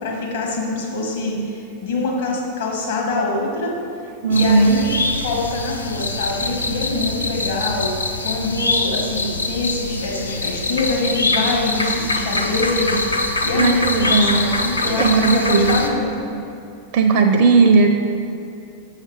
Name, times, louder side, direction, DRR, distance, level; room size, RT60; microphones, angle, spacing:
voice 1, 0.0-3.8 4.3-16.3, left 2 dB, 60° left, -2 dB, 1.6 m, -24 dB
voice 2, 4.2-4.8 13.6-14.5 15.0-15.8 16.9-17.9, right 4 dB, 45° right, 4 dB, 0.4 m, -16 dB
sound 1, 4.3-15.9, left 2 dB, 80° left, 0.5 m, -24 dB
6.4 x 5.7 x 4.9 m, 2.7 s
figure-of-eight pair, 90°, 0 cm